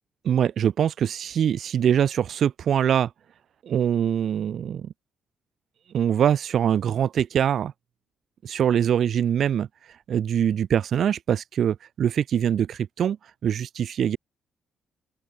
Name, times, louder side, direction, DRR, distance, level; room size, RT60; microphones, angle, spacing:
voice 1, 0.2-3.1 3.6-4.9 5.9-7.7 8.4-9.7 10.1-13.2 13.4-14.2, right 9 dB, 60° right, 2.1 m, -23 dB
open air
cardioid pair, 90°, 0 cm